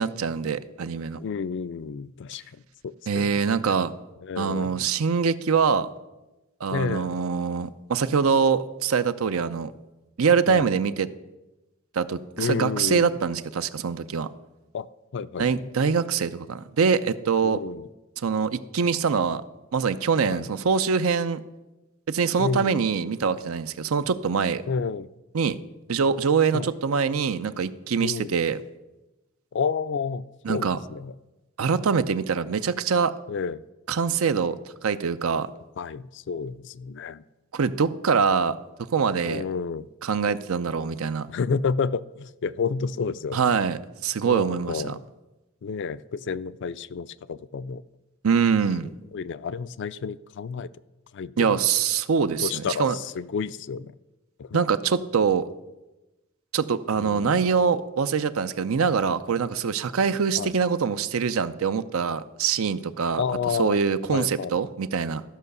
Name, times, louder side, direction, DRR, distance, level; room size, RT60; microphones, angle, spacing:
voice 1, 0.0-1.2 3.1-3.9 4.4-5.9 6.6-9.7 10.2-11.1 11.9-14.3 15.4-17.6 18.2-19.4 19.7-21.4 22.1-24.6 25.3-25.6 25.9-28.6 30.4-30.8 31.6-33.1 33.9-34.6 34.8-35.5 37.5-39.4 40.0-41.3 43.3-45.0 48.2-48.9 51.4-53.0 54.5-55.5 56.5-63.2 63.6-65.2, right 6 dB, 90° right, 13 dB, 0.6 m, -24 dB
voice 2, 1.2-3.3 4.2-4.8 6.7-7.2 10.5-10.8 12.4-13.2 14.7-14.9 15.1-15.7 17.4-17.8 20.2-20.5 22.4-22.8 24.7-25.1 26.5-26.7 28.0-28.3 29.5-31.1 33.3-33.6 35.8-37.2 39.2-39.9 41.3-43.5 44.2-45.0 45.6-47.8 49.1-50.7 51.1-51.6 52.4-53.9 54.4-54.6 57.0-57.4 60.4-60.5 63.2-63.8 64.1-64.5, left 5 dB, 60° left, 16 dB, 0.4 m, -30 dB
13.5 x 5.6 x 6.7 m, 1.0 s
head